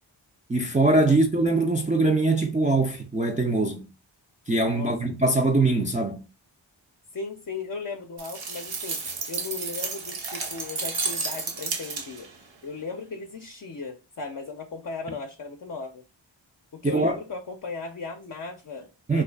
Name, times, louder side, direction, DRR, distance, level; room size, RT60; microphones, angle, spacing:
voice 1, 0.5-3.8 4.5-6.2 16.8-17.2 19.1-19.2, right 2 dB, 20° right, 0.3 m, -22 dB
voice 2, 7.1-12.3 12.6-16.0 16.7-19.2, left 4 dB, 45° left, 0.5 m, -36 dB
sound 1, 8.2-12.4, right 4 dB, 75° right, 0.8 m, -32 dB
2.4 x 2.3 x 2.2 m
cardioid pair, 45°, 48 cm